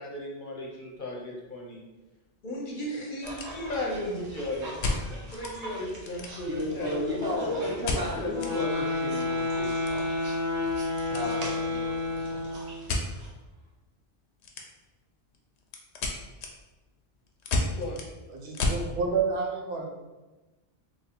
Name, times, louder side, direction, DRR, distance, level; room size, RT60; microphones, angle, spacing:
voice 1, 0.0-1.8 2.4-7.7 8.1-8.3 17.5-18.1, left 1 dB, 55° left, -2 dB, 0.8 m, -36 dB
sound 1, 0.8-1.0 1.3-1.4 2.0-2.1 2.3-2.4 3.0-4.0 4.8-5.6 5.9-6.7 7.8-8.5 8.9-9.0 9.3-11.3 11.5-11.8 12.9-13.1 14.4-15.0 15.3-18.9, left 2 dB, 85° left, 0.9 m, -32 dB
sound 2, 3.2-13.3, right 1 dB, 90° right, 1.1 m, -44 dB
voice 2, 6.5-9.9 10.9-12.4, left 1 dB, 25° right, -4 dB, 0.6 m, -33 dB
sound 3, 8.2-12.8, left 3 dB, 10° left, 1.1 m, -30 dB
voice 3, 18.3-19.9, right 5 dB, 75° right, 0 dB, 0.9 m, -29 dB
3.0 x 2.6 x 4.1 m, 1.1 s
omnidirectional pair, 1.1 m